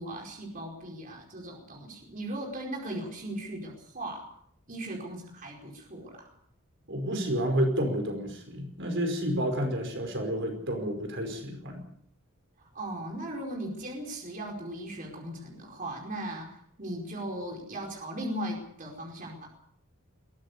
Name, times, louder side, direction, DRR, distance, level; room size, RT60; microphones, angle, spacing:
voice 1, 0.0-4.3 4.7-6.3 12.6-16.5 16.8-19.5, right 1 dB, 40° right, 0 dB, 5.0 m, -38 dB
voice 2, 6.9-11.8, equal, 55° right, 4 dB, 5.2 m, -30 dB
22.5 x 17.0 x 6.8 m, 0.66 s
head